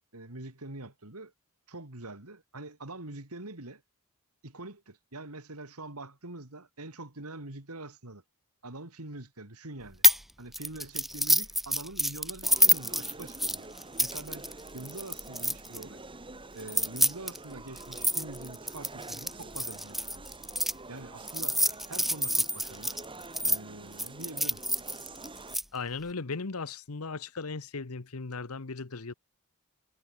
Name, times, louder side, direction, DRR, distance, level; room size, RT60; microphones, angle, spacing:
voice 1, 0.1-1.3 1.7-3.8 4.4-8.2 8.6-10.0 10.4-13.7 14.0-16.0 16.5-20.2 20.9-21.6 21.9-23.0 23.4-24.6, right 2 dB, 85° right, 3.5 m, -44 dB
sound 1, 10.0-10.2 10.5-15.8 16.6-20.7 21.3-23.6 24.0-25.6, equal, ahead, 1.7 m, -27 dB
sound 2, 12.4-25.6, right 2 dB, 25° right, 3.5 m, -47 dB
voice 2, 25.7-29.1, left 4 dB, 75° left, 1.1 m, -37 dB
head